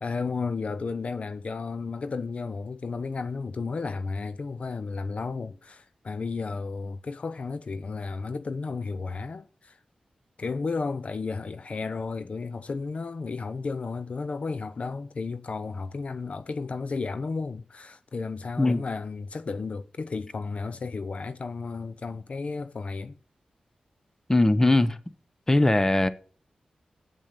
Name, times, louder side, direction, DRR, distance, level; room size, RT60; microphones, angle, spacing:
voice 1, 0.0-9.8 10.4-23.2, left 4 dB, 55° left, 0.6 m, -33 dB
voice 2, 24.3-25.0 25.5-26.1, left 2 dB, 20° left, 0.9 m, -20 dB
8.3 x 7.2 x 6.7 m
cardioid pair, 60°, 3 cm